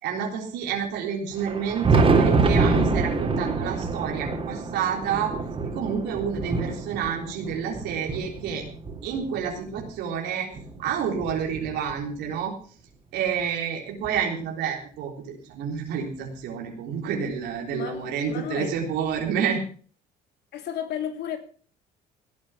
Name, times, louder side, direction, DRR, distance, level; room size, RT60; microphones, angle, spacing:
voice 1, 0.0-5.3 5.6-8.6 9.0-10.5 10.8-12.5 13.1-19.6, right 7 dB, 85° right, 1 dB, 3.7 m, -29 dB
Thunder, 1.3-9.9 10.5-12.2 13.4-13.5 14.0-14.1 16.0-16.1 17.5-17.6 19.1-19.2, right 4 dB, 35° right, 3.9 m, -26 dB
voice 2, 17.7-18.8 20.5-21.4, left 9 dB, 75° left, 7 dB, 3.1 m, -33 dB
17.5 x 9.0 x 5.8 m, 0.42 s
cardioid pair, 110°, 17 cm